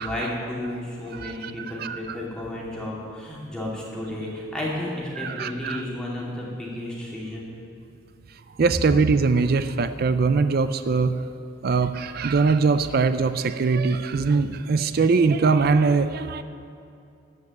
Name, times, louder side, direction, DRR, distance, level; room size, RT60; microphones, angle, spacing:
voice 1, 0.0-7.5, left 1 dB, 5° left, -5 dB, 2.5 m, -32 dB
voice 2, 1.1-2.0 5.2-5.8 8.6-11.2 11.6-16.4, right 4 dB, 50° right, 11 dB, 0.4 m, -22 dB
14.0 x 5.5 x 9.2 m, 2.5 s
head